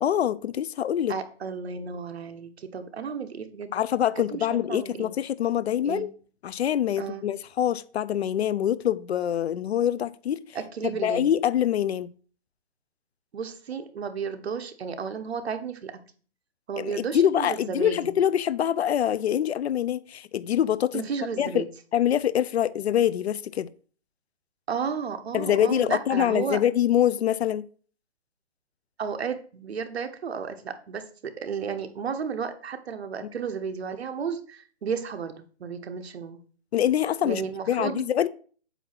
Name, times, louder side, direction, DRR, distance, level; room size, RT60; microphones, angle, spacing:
voice 1, 0.0-1.1 3.7-6.1 6.4-10.4 10.8-12.1 16.8-21.0 21.4-21.6 21.9-23.7 25.3-27.6 36.7-38.3, left 10 dB, 75° left, 0.5 m, -25 dB
voice 2, 1.1-3.7 4.2-5.1 5.8-6.1 7.0-7.2 10.5-11.3 13.3-15.9 16.7-18.2 20.9-21.7 24.7-26.6 29.0-36.4 37.2-38.0, right 6 dB, 70° right, 1.1 m, -33 dB
8.1 x 2.7 x 5.9 m
hypercardioid pair, 175°, 33 cm